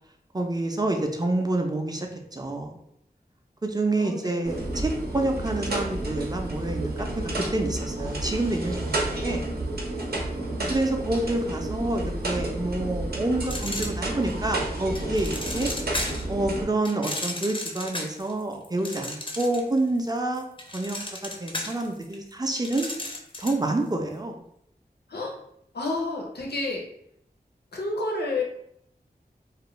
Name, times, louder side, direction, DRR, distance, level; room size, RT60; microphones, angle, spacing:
voice 1, 0.3-2.7 3.6-9.4 10.7-15.7 16.3-20.5 20.7-22.9 23.4-24.4, right 2 dB, 25° right, 3 dB, 0.4 m, -28 dB
voice 2, 4.0-4.4 10.2-10.7 25.1-25.3 25.7-26.9 27.7-28.4, left 2 dB, 75° left, -1 dB, 0.6 m, -30 dB
sound 1, 4.4-16.6, right 1 dB, 70° right, 0.6 m, -31 dB
sound 2, 13.4-14.4 15.0-16.3 16.8-19.8 20.1-23.7, left 1 dB, 30° left, 0.5 m, -34 dB
2.4 x 2.1 x 3.0 m, 0.74 s
wide cardioid pair, 55°, 17 cm